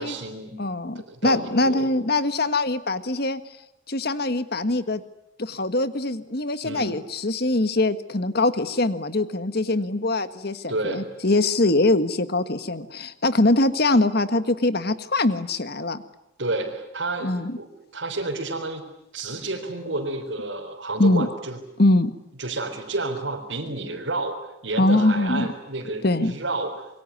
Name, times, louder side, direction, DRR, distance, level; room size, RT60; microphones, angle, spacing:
voice 1, 0.0-0.6 0.9-1.9 6.6-7.0 10.7-11.1 16.4-17.7 17.9-18.8 19.1-21.6 22.4-26.9, right 2 dB, 75° right, -3 dB, 3.9 m, -30 dB
voice 2, 0.6-3.4 3.9-5.0 5.4-16.0 17.2-17.6 21.0-21.3 21.8-22.1 24.8-25.5 26.0-26.3, left 2 dB, 55° left, 12 dB, 1.6 m, -23 dB
27.0 x 22.5 x 9.7 m, 0.86 s
head